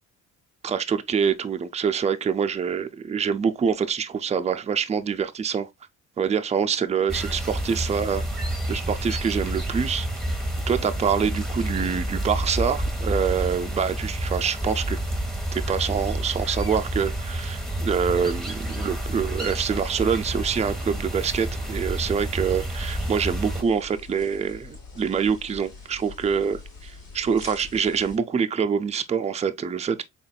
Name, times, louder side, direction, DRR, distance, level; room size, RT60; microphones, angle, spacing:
voice 1, 0.6-5.7 6.2-8.3 8.7-10.1 10.7-15.0 15.5-30.1, right 6 dB, 20° right, 0.4 m, -25 dB
sound 1, 7.1-23.6, right 1 dB, ahead, 1.1 m, -29 dB
sound 2, 22.8-28.2, left 3 dB, 80° left, 2.5 m, -44 dB
4.0 x 3.6 x 2.2 m
cardioid pair, 90°, 30 cm